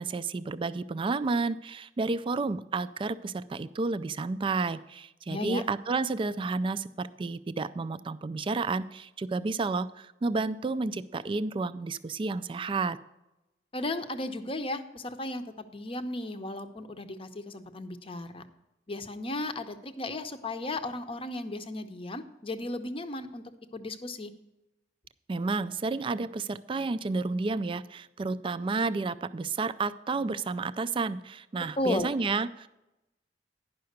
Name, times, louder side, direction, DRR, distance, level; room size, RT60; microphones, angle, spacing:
voice 1, 0.0-13.0 25.3-32.7, right 3 dB, 30° right, 14 dB, 0.3 m, -31 dB
voice 2, 5.3-5.7 13.7-18.4 18.9-23.4 23.7-24.3 31.8-32.1, left 2 dB, 30° left, 9 dB, 0.7 m, -35 dB
10.5 x 5.7 x 6.5 m, 0.95 s
head